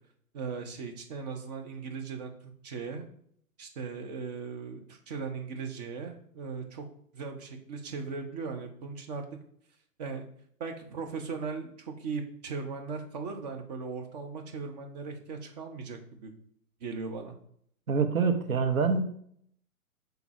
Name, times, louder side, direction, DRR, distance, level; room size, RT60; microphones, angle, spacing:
voice 1, 0.3-3.0 3.6-6.8 7.1-9.2 10.0-10.3 10.6-16.3 16.8-17.3, right 5 dB, 30° right, 4 dB, 0.8 m, -38 dB
voice 2, 17.9-19.0, right 5 dB, 70° right, 6 dB, 1.0 m, -25 dB
6.0 x 3.5 x 4.7 m, 0.66 s
figure-of-eight pair, 130°, 44 cm